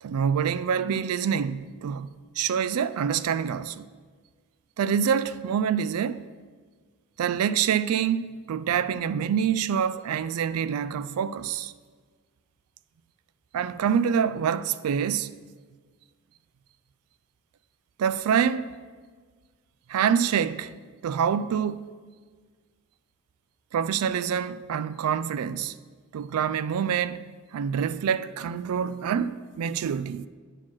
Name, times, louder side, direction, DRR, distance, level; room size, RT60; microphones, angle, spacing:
voice 1, 0.0-2.1 2.4-3.9 4.8-6.3 7.2-11.7 13.5-15.3 18.0-18.7 19.9-20.7 21.0-21.9 23.7-25.8 26.1-30.3, right 7 dB, 85° right, 0.3 m, -26 dB
8.8 x 4.4 x 6.0 m
head